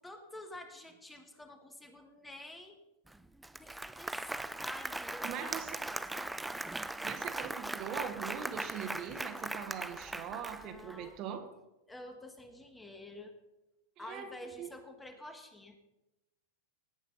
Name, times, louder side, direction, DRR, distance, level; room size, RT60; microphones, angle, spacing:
voice 1, 0.0-2.8 3.6-6.8 10.5-11.2 11.9-13.3 14.0-15.8, left 1 dB, 10° left, 6 dB, 1.8 m, -49 dB
Applause, 3.1-3.2 3.4-11.0, right 2 dB, 5° right, 0.5 m, -39 dB
voice 2, 5.2-5.8 7.0-11.5 14.0-14.3 14.6-14.7, right 8 dB, 45° right, 7 dB, 1.5 m, -41 dB
18.0 x 9.1 x 4.0 m, 0.94 s
hypercardioid pair, 95°, 0 cm